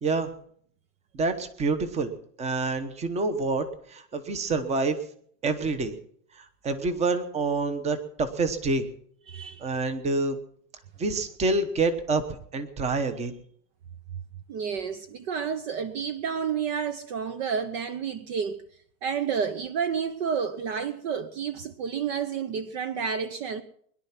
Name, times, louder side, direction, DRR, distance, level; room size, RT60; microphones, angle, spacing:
voice 1, 0.0-0.3 1.1-2.1 2.4-5.0 5.4-6.0 6.4-8.9 9.6-10.4 11.0-12.2 12.5-13.4, right 3 dB, 15° right, 1.1 m, -27 dB
voice 2, 9.3-9.6 14.5-18.6 19.0-23.6, right 7 dB, 40° right, 0.9 m, -30 dB
21.5 x 11.0 x 5.9 m
supercardioid pair, 165°, 48 cm